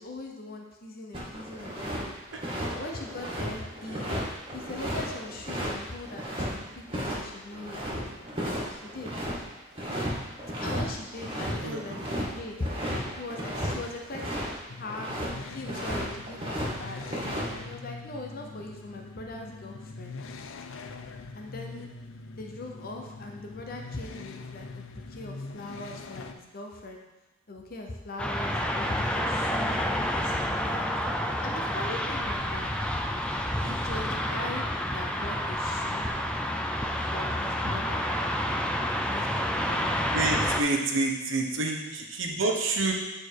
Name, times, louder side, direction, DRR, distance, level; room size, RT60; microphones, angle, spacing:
voice 1, 0.0-2.1 2.7-4.2 4.5-8.0 8.6-9.1 10.6-12.7 13.1-15.1 15.5-17.0 17.5-20.2 21.3-21.9 22.4-27.0 27.5-30.9 31.4-32.7 33.6-34.7 34.9-36.1 37.1-38.1 39.0-39.9, left 2 dB, 50° left, 2 dB, 0.8 m, -40 dB
sound 1, 1.1-2.0 2.3-6.5 6.9-7.2 7.4-9.4 9.8-10.1 10.4-10.9 11.1-14.5 14.8-15.3 15.6-16.7 17.0-17.5, equal, 30° right, 2.0 m, -33 dB
voice 2, 2.3-2.8 3.2-3.4 3.9-4.2 11.6-11.8 40.1-42.9, right 3 dB, 80° right, 1 dB, 1.1 m, -29 dB
sound 2, 14.7-26.3, left 3 dB, 85° left, 0.5 m, -43 dB
sound 3, 28.2-40.6, equal, 5° left, 0.5 m, -29 dB
8.5 x 4.4 x 4.7 m, 1.1 s
head